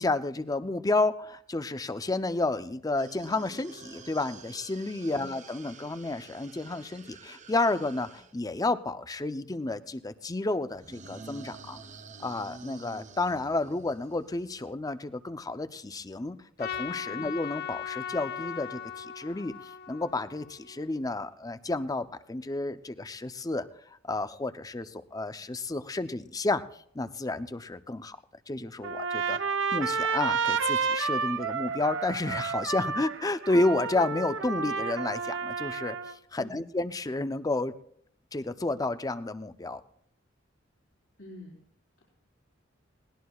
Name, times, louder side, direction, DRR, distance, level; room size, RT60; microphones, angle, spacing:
voice 1, 0.0-11.8 12.2-23.7 24.0-26.6 26.9-28.2 28.5-29.4 29.7-37.7 38.3-39.8, left 2 dB, 20° left, 12 dB, 0.5 m, -31 dB
sound 1, 3.0-8.3 10.7-14.7, right 4 dB, 40° right, 0.8 m, -49 dB
Trumpet, 16.6-21.0, left 8 dB, 55° left, 0.8 m, -38 dB
Trumpet 2, 28.8-36.2, right 5 dB, 70° right, 0.8 m, -30 dB
voice 2, 41.2-41.6, left 1 dB, 75° left, -7 dB, 4.1 m, -46 dB
20.5 x 18.5 x 2.3 m, 0.67 s
head